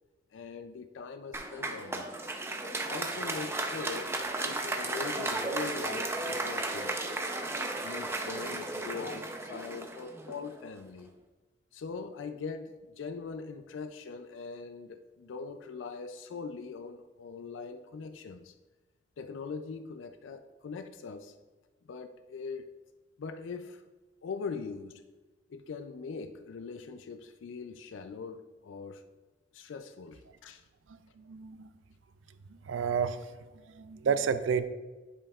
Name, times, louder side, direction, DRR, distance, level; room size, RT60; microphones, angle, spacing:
voice 1, 0.3-2.1 2.6-4.2 4.4-7.3 7.8-11.1 11.7-18.5 19.2-21.3 21.9-22.8 23.2-23.8 24.2-25.0 25.5-29.0 29.5-30.6, left 5 dB, 80° left, 9 dB, 0.4 m, -41 dB
Applause, 1.3-10.7, right 2 dB, 15° right, 0.5 m, -35 dB
voice 2, 31.2-31.7 32.5-33.4 33.6-34.7, right 6 dB, 80° right, 12 dB, 0.4 m, -31 dB
9.9 x 5.2 x 2.4 m, 1.2 s
head